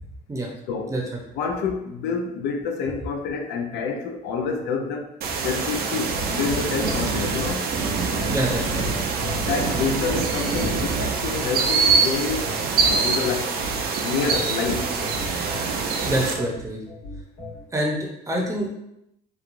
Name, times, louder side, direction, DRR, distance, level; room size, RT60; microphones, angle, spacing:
voice 1, 1.3-5.1 5.4-7.7 9.3-12.5 12.8-13.6 14.0-14.9, left 5 dB, 85° left, 4 dB, 0.4 m, -28 dB
sound 1, 5.2-16.3, right 5 dB, 65° right, 0.5 m, -25 dB
sound 2, 6.0-17.6, right 1 dB, 50° left, 1.3 m, -34 dB
voice 2, 8.3-8.9 16.0-16.8 17.7-18.0 18.3-18.7, right 1 dB, 20° right, -1 dB, 0.7 m, -25 dB
3.0 x 2.4 x 2.5 m, 0.82 s
cardioid pair, 110°, 17 cm